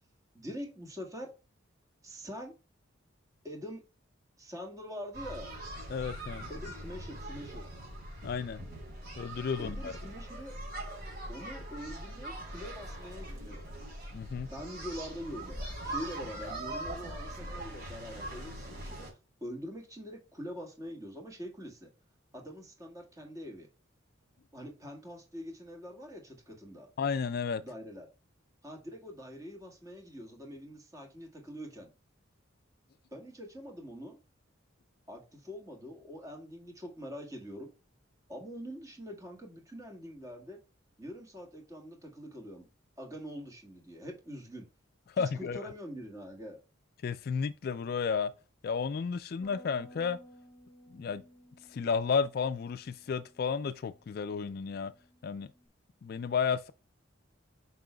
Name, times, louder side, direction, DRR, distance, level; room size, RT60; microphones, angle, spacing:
voice 1, 0.3-1.3 2.0-2.5 3.4-3.8 4.4-5.5 6.5-7.7 9.6-10.6 11.3-13.7 14.5-15.6 15.8-19.1 19.4-21.9 22.3-23.7 24.5-26.9 27.6-28.1 28.6-31.9 33.1-34.2 35.1-37.7 38.3-40.6 41.0-42.7 43.0-44.7 45.2-46.6, equal, 15° right, 1.6 m, -44 dB
sound 1, 5.1-19.1, right 1 dB, 50° right, 3.9 m, -42 dB
voice 2, 5.9-6.5 8.2-8.6 9.2-9.9 14.1-14.5 27.0-27.6 45.2-45.6 47.0-48.3 48.6-50.2 50.9-51.2 51.7-54.9 55.2-55.5 56.0-56.7, left 6 dB, 50° left, 0.3 m, -32 dB
Bass guitar, 49.4-55.7, equal, 30° left, 0.9 m, -58 dB
7.5 x 5.5 x 2.3 m
head